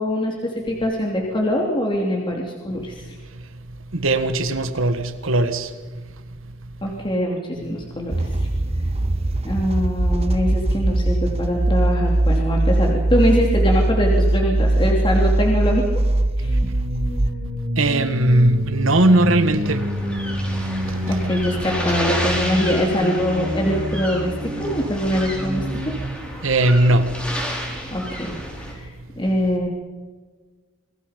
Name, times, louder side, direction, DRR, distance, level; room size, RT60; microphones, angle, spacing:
voice 1, 0.0-3.2 6.8-8.1 9.4-15.8 16.4-16.5 21.1-25.6 27.9-29.7, equal, 20° left, 3.0 m, -23 dB
voice 2, 3.9-5.7 17.8-19.8 20.6-21.2 26.4-27.1, right 1 dB, 75° right, 1.6 m, -19 dB
sound 1, 8.1-17.3, right 1 dB, 30° right, 0.7 m, -20 dB
sound 2, 16.4-26.0, equal, 55° right, 5.0 m, -28 dB
sound 3, 19.6-28.7, equal, 5° left, 4.8 m, -31 dB
28.0 x 22.0 x 5.2 m
head